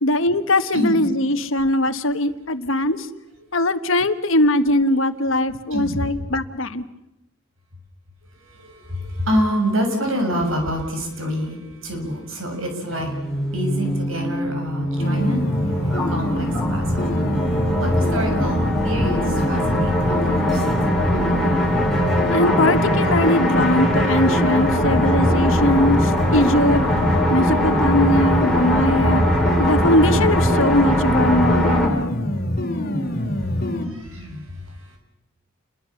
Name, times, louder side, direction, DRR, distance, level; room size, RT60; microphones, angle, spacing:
voice 1, 0.0-3.1 3.5-6.8 22.3-26.8 27.3-29.2 29.6-32.2, left 1 dB, 70° left, 10 dB, 1.4 m, -20 dB
voice 2, 0.7-1.0 5.7-6.2 8.6-11.6 11.8-13.1 13.5-15.4 16.1-17.1 17.7-18.6 18.8-20.6 33.9-34.4, equal, 80° right, 4 dB, 6.6 m, -26 dB
sound 1, 12.9-31.9, equal, ahead, 5.9 m, -21 dB
sound 2, 15.0-33.9, left 1 dB, 45° left, 2.7 m, -25 dB
29.5 x 22.0 x 7.2 m, 0.88 s
head